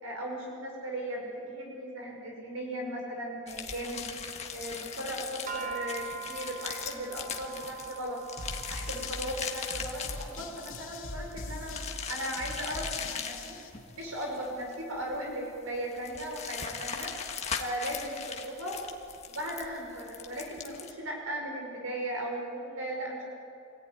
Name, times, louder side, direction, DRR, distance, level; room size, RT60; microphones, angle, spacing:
voice 1, 0.0-4.0 4.5-8.2 8.7-13.6 13.9-18.8 19.2-23.2, right 1 dB, 85° right, 0 dB, 5.6 m, -37 dB
sound 1, 3.5-20.9, left 6 dB, 30° left, 1.7 m, -40 dB
sound 2, 5.5-11.8, right 6 dB, 35° right, 1.2 m, -44 dB
sound 3, 8.4-13.7, left 2 dB, 75° left, 2.7 m, -42 dB
26.5 x 18.5 x 9.8 m, 2.5 s
head